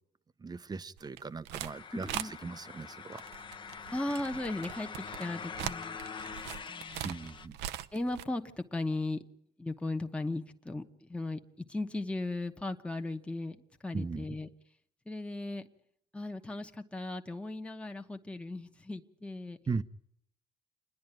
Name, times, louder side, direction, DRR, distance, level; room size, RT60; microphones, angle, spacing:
voice 1, 0.4-3.2 7.0-7.6 13.9-14.3 19.7-19.8, right 4 dB, 25° right, 14 dB, 0.7 m, -38 dB
sound 1, 1.0-1.7 2.0-2.3 3.1-8.2, right 12 dB, 85° right, 0.7 m, -41 dB
sound 2, 1.7-7.5, left 6 dB, 30° left, 0.9 m, -44 dB
voice 2, 1.9-2.6 3.9-6.0 6.7-7.3 7.9-9.2 9.6-11.4 11.7-13.6 13.8-14.5 15.1-15.7 16.1-19.6, left 2 dB, 5° left, 5 dB, 1.1 m, -37 dB
28.0 x 10.5 x 9.1 m, 0.72 s
cardioid pair, 110°, 17 cm